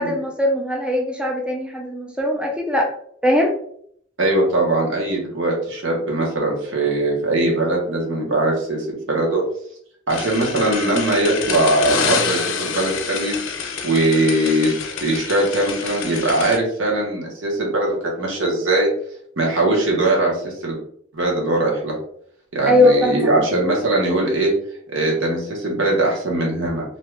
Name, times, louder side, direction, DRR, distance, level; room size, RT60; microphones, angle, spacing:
voice 1, 0.0-2.9 3.2-3.5 22.7-23.5, left 1 dB, 5° right, 0 dB, 0.3 m, -20 dB
voice 2, 4.2-9.4 10.1-13.4 13.8-18.9 19.4-20.8 21.1-22.0 22.5-24.5 24.9-26.8, right 2 dB, 75° right, -2 dB, 1.0 m, -20 dB
sound 1, 10.1-16.6, left 5 dB, 80° left, 0.5 m, -27 dB
2.7 x 2.3 x 3.2 m, 0.64 s
head